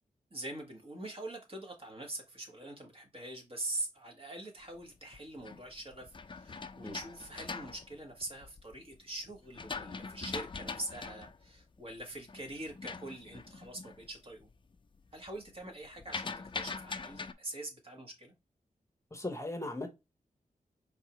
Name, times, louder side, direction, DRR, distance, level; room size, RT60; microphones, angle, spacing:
voice 1, 0.3-14.5 15.1-18.3, right 1 dB, 40° right, 1.5 m, -44 dB
sound 1, 4.9-8.7 9.2-14.1 14.4-14.8 15.1-17.3, left 4 dB, 35° left, 0.4 m, -42 dB
voice 2, 19.1-19.9, left 2 dB, 20° left, 0.9 m, -37 dB
4.6 x 3.5 x 3.0 m
wide cardioid pair, 125°, 15 cm